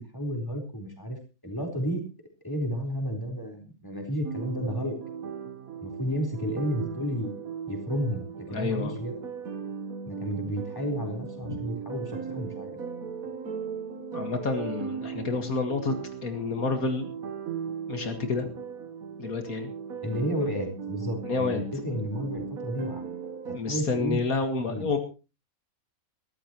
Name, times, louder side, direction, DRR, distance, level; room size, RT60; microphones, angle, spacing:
voice 1, 0.0-2.0 2.4-5.0 5.8-7.4 7.7-9.2 10.1-12.8 20.0-23.1 23.5-24.2 24.7-24.9, equal, 15° left, 2 dB, 4.2 m, -32 dB
sound 1, 4.2-23.6, right 7 dB, 75° right, 1.7 m, -38 dB
voice 2, 8.5-8.9 11.5-11.6 14.1-15.9 16.2-17.1 17.9-18.5 19.2-19.7 21.3-21.6 21.9-22.0 23.5-25.0, left 4 dB, 80° left, 5 dB, 2.3 m, -29 dB
22.0 x 13.5 x 3.1 m, 0.32 s
omnidirectional pair, 1.5 m